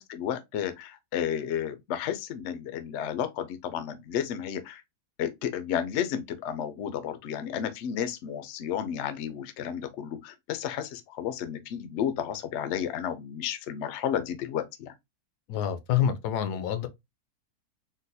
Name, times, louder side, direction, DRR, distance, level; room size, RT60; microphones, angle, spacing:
voice 1, 0.1-4.8 5.2-14.9, left 9 dB, 70° left, 0.7 m, -32 dB
voice 2, 15.5-16.9, left 9 dB, 85° left, 1.1 m, -27 dB
3.9 x 2.2 x 2.6 m
omnidirectional pair, 1.7 m